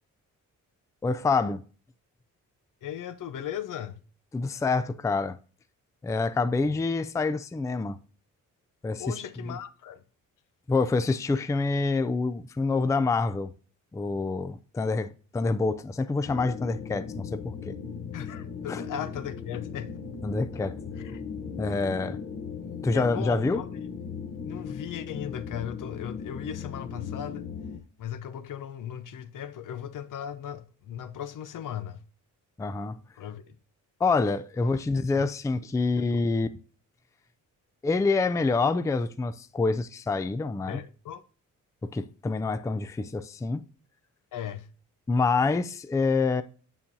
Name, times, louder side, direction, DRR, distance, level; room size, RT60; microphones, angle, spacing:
voice 1, 1.0-1.6 4.3-5.4 6.0-8.0 8.8-9.0 9.4-9.6 10.7-13.5 13.9-17.8 18.7-18.8 20.2-20.8 21.6-22.2 22.8-23.6 32.6-33.0 34.0-36.5 37.8-40.8 41.8-43.6 45.1-46.4, left 3 dB, 10° left, 0.4 m, -26 dB
voice 2, 2.8-4.0 6.7-6.8 9.0-10.0 18.1-20.0 21.0-21.2 22.9-23.8 24.5-27.4 28.0-32.0 33.2-33.6 34.6-34.7 35.1-35.3 36.0-36.2 40.7-41.2 44.3-44.7, left 9 dB, 70° left, 0.8 m, -37 dB
sound 1, 16.2-27.8, left 6 dB, 35° left, 1.0 m, -38 dB
7.4 x 7.1 x 2.7 m
cardioid pair, 80°, 32 cm